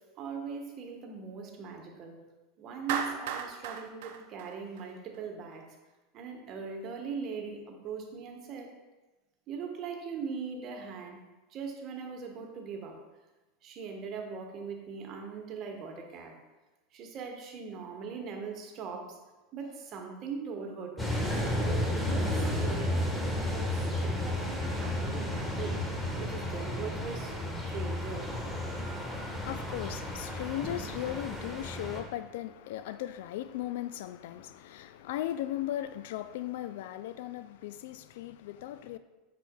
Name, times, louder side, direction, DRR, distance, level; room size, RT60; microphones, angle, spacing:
voice 1, 0.2-2.2 2.6-5.7 6.1-8.7 9.5-11.2 11.5-13.0 13.6-16.3 16.9-19.2 19.5-21.1 21.6-25.8 26.2-27.4 27.6-28.3, right 5 dB, 45° right, 1.2 m, -40 dB
Clapping, 2.9-5.2, right 8 dB, 65° right, 0.6 m, -35 dB
sound 1, 21.0-32.0, left 1 dB, 10° left, 1.4 m, -32 dB
voice 2, 28.9-39.0, left 13 dB, 65° left, 0.3 m, -37 dB
8.1 x 6.1 x 2.3 m
hypercardioid pair, 90°, 0 cm